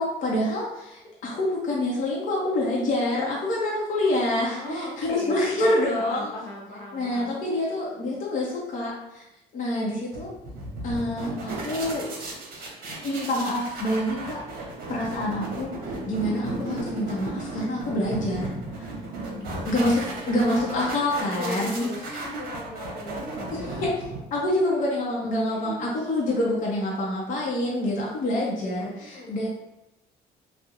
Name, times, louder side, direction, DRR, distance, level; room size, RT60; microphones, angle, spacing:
voice 1, 0.0-4.6 5.0-6.3 6.9-9.2 9.5-10.3 10.8-12.1 12.9-15.7 16.0-18.5 18.8-18.9 19.6-20.0 20.3-22.2 23.8-23.9 24.3-29.5, left 1 dB, 50° left, -4 dB, 0.6 m, -26 dB
voice 2, 4.6-5.6 5.9-7.7 19.2-20.2 21.3-24.0 25.4-25.9 29.0-29.5, equal, 80° left, -3 dB, 0.9 m, -38 dB
sound 1, 10.1-24.5, right 2 dB, 65° right, 0.7 m, -35 dB
2.8 x 2.0 x 2.4 m, 0.91 s
cardioid pair, 110°, 17 cm